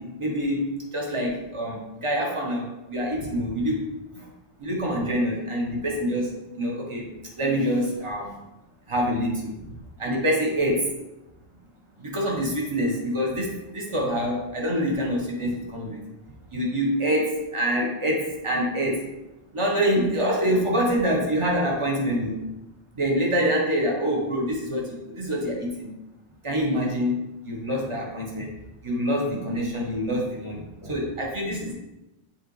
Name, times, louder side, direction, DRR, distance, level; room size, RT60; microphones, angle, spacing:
voice 1, 0.0-3.9 4.1-4.2 4.6-7.1 7.4-8.3 8.9-10.9 12.0-16.0 16.5-19.1 19.5-22.5 22.9-25.9 26.4-28.5 28.8-31.7, equal, 25° right, -2 dB, 1.3 m, -26 dB
7.8 x 4.2 x 3.3 m, 0.94 s
omnidirectional pair, 1.2 m